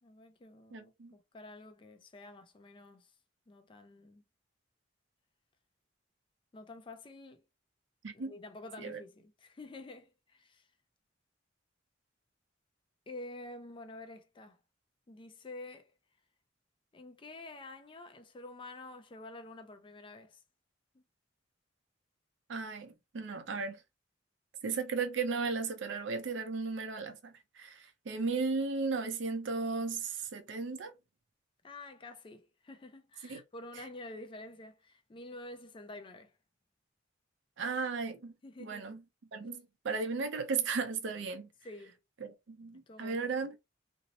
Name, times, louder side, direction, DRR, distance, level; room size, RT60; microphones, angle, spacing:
voice 1, 0.0-3.1 3.5-4.2 6.5-7.4 8.1-10.7 13.1-14.6 15.1-15.9 16.9-20.4 20.9-21.0 31.6-36.3 38.4-38.8 39.4-39.5 41.6-41.9 42.9-43.3, left 2 dB, 25° left, 0.4 m, -49 dB
voice 2, 0.7-1.1 8.0-8.3 8.8-9.0 22.5-23.8 24.6-30.9 33.2-33.4 37.6-38.3 38.6-39.0 39.3-41.5 42.2-43.5, right 4 dB, 70° right, 0.5 m, -35 dB
2.6 x 2.0 x 2.6 m
head